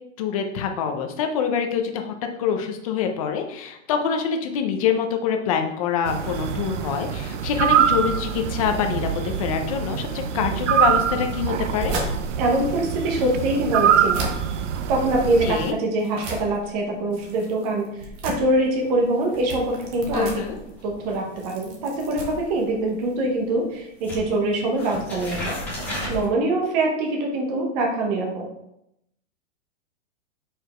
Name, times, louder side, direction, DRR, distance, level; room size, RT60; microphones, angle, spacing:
voice 1, 0.2-12.1 15.5-15.7 20.1-20.6, left 7 dB, 30° left, 5 dB, 0.6 m, -25 dB
sound 1, 6.1-15.7, right 8 dB, 70° right, 0.7 m, -24 dB
sound 2, 11.5-23.2, right 1 dB, 15° right, 0.6 m, -36 dB
voice 2, 12.4-14.3 14.9-20.3 20.8-25.6 26.1-28.5, right 2 dB, 30° right, 0 dB, 1.1 m, -24 dB
sound 3, 18.8-23.7 24.0-26.3, left 1 dB, 5° left, 1.6 m, -36 dB
4.9 x 4.9 x 4.4 m, 0.81 s
hypercardioid pair, 165°, 37 cm